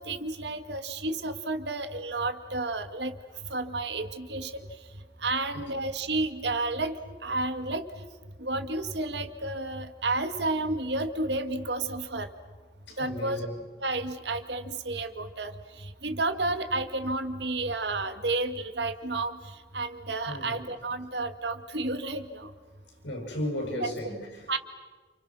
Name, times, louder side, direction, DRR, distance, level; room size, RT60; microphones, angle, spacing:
voice 1, 0.0-3.1 3.5-4.6 5.2-7.0 7.2-7.8 8.4-12.3 13.0-13.5 13.8-15.5 15.8-19.4 19.7-22.5 23.8-23.9 24.5-24.6, right 2 dB, 70° right, 9 dB, 2.0 m, -31 dB
voice 2, 12.9-13.6 20.3-20.6 23.0-24.5, left 1 dB, 80° left, 1 dB, 7.5 m, -35 dB
29.5 x 29.0 x 6.3 m, 1.4 s
head